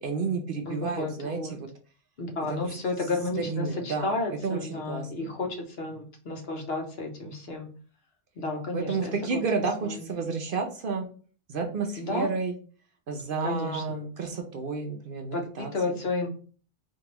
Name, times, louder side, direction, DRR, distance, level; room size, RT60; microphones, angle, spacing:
voice 1, 0.0-1.7 2.4-2.6 3.4-5.3 8.7-11.0 11.5-12.5 13.1-16.0, right 4 dB, 55° right, 3 dB, 0.7 m, -31 dB
voice 2, 0.7-1.6 2.2-7.7 8.4-9.1 9.8-10.1 12.0-12.3 13.4-14.0 15.3-16.3, left 2 dB, 65° left, 3 dB, 1.1 m, -32 dB
4.7 x 2.6 x 2.9 m, 0.41 s
omnidirectional pair, 1.2 m